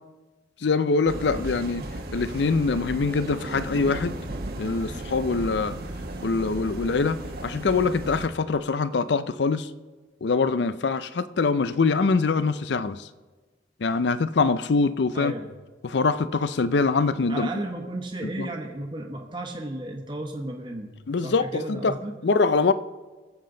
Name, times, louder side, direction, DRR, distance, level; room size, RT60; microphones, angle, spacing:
voice 1, 0.6-1.8 2.1-4.2 4.6-5.7 6.2-9.7 10.2-13.1 13.8-15.3 15.8-17.5 18.4-18.5 21.1-22.0 22.2-22.7, left 4 dB, 65° left, 0.5 m, -24 dB
sound 1, 1.1-8.3, right 1 dB, 55° right, 1.1 m, -35 dB
voice 2, 15.1-15.5 17.3-20.9 21.2-22.1, right 1 dB, 25° right, 1.2 m, -34 dB
22.0 x 7.6 x 3.9 m
head